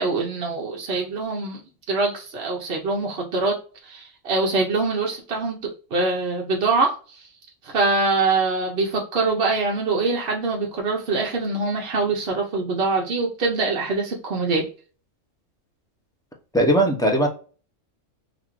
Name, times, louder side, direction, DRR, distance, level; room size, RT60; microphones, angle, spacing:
voice 1, 0.0-1.6 1.9-3.5 3.8-7.2 7.6-14.7, right 3 dB, 55° right, -1 dB, 1.0 m, -24 dB
voice 2, 16.5-17.3, right 1 dB, 5° left, 1 dB, 0.4 m, -18 dB
4.0 x 2.4 x 3.0 m, 0.37 s
omnidirectional pair, 1.3 m